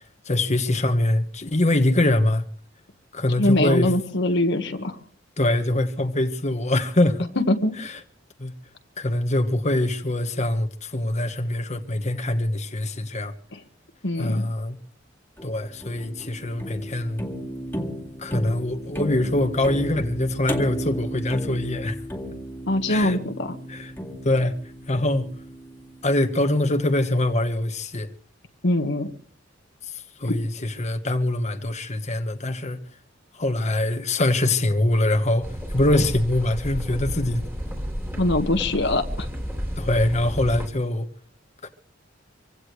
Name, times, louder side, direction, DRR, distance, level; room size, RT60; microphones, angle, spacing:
voice 1, 0.0-2.4 3.1-3.9 5.4-7.3 7.8-8.0 8.4-8.5 9.0-13.3 14.2-14.8 15.4-17.3 18.2-22.0 22.9-23.2 23.7-23.9 24.2-24.6 24.9-25.3 26.0-28.1 29.8-32.8 33.3-37.4 39.8-41.1 41.6-41.7, left 1 dB, 40° left, 1.3 m, -23 dB
voice 2, 3.4-5.0 7.4-7.7 13.5-13.6 14.0-14.5 22.7-23.6 28.6-29.1 30.2-30.3 38.2-39.3, left 1 dB, 65° left, 1.5 m, -23 dB
sound 1, 15.4-26.6, equal, 10° left, 2.2 m, -34 dB
sound 2, 35.4-40.7, equal, 10° right, 3.1 m, -31 dB
25.5 x 16.5 x 3.2 m
head